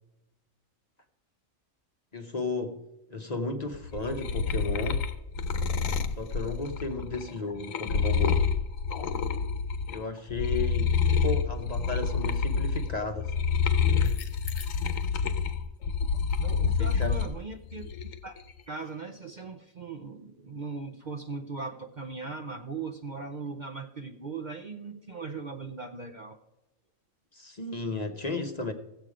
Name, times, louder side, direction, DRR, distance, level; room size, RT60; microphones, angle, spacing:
voice 1, 2.1-2.8 3.1-5.1 6.2-8.4 9.9-13.3 16.6-17.2 27.3-28.7, left 3 dB, 35° left, 4 dB, 0.9 m, -34 dB
sound 1, 3.7-10.0 10.3-17.3 17.7-18.4, left 5 dB, 90° left, 1.3 m, -28 dB
voice 2, 16.4-26.4, right 4 dB, 45° right, 5 dB, 0.7 m, -39 dB
15.5 x 8.0 x 4.9 m, 0.98 s
omnidirectional pair, 1.3 m